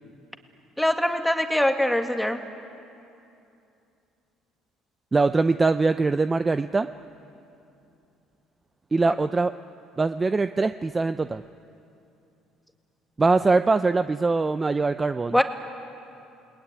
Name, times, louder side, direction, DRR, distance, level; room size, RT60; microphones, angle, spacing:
voice 1, 0.8-2.4 15.3-15.4, left 1 dB, 5° left, 5 dB, 1.9 m, -22 dB
voice 2, 5.1-6.9 8.9-9.5 10.0-11.4 13.2-15.4, right 3 dB, 20° right, 11 dB, 0.5 m, -22 dB
29.0 x 20.0 x 9.9 m, 2.7 s
cardioid pair, 105°, 0 cm